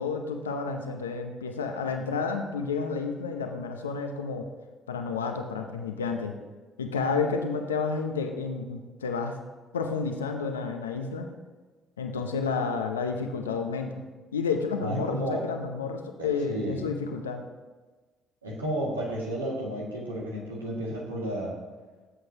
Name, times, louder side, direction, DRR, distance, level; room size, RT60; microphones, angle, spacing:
voice 1, 0.0-4.5 4.9-6.3 6.8-9.4 9.7-11.3 12.0-13.9 14.3-17.4, left 5 dB, 85° left, 4 dB, 0.7 m, -30 dB
voice 2, 14.8-15.4 16.2-16.8 18.4-21.6, right 1 dB, 90° right, -3 dB, 2.0 m, -32 dB
16.5 x 7.8 x 2.9 m, 1.3 s
figure-of-eight pair, 50°, 0 cm